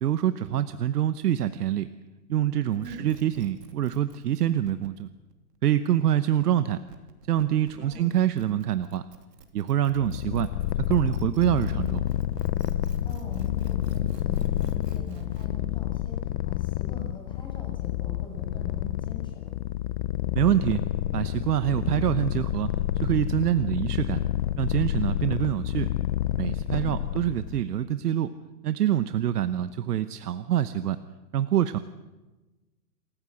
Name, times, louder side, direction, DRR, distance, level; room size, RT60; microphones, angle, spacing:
voice 1, 0.0-1.9 2.3-5.1 5.6-6.8 7.3-9.0 9.5-10.5 10.8-12.0 20.3-20.8 21.1-22.7 23.0-24.2 24.6-25.9 26.3-28.3 28.6-31.0 31.3-31.8, right 11 dB, 75° right, 12 dB, 1.1 m, -25 dB
voice 2, 2.7-3.1 7.8-8.1 13.0-19.5 26.7-27.0, left 1 dB, 10° left, -1 dB, 7.2 m, -43 dB
sound 1, 2.7-15.5, right 6 dB, 90° right, 3.1 m, -50 dB
Purr, 9.9-27.6, left 13 dB, 30° left, 0.6 m, -29 dB
27.5 x 15.0 x 7.8 m, 1.2 s
hypercardioid pair, 150°, 47 cm